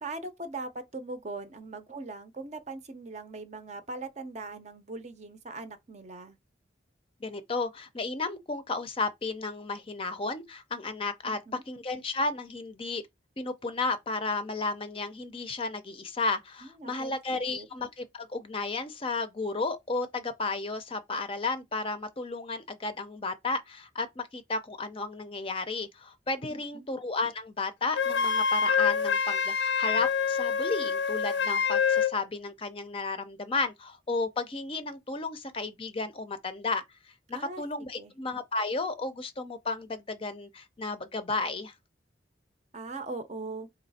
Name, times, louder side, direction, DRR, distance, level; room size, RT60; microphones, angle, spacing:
voice 1, 0.0-6.4 11.2-11.6 16.6-17.7 26.5-26.9 37.3-37.6 38.0-38.1 42.7-43.7, right 3 dB, 35° right, 0.6 m, -40 dB
voice 2, 7.2-11.4 11.7-13.0 13.4-41.7, left 3 dB, 30° left, 0.5 m, -33 dB
Wind instrument woodwind instrument, 27.9-32.1, left 6 dB, 75° left, 0.5 m, -26 dB
4.2 x 3.1 x 4.1 m
head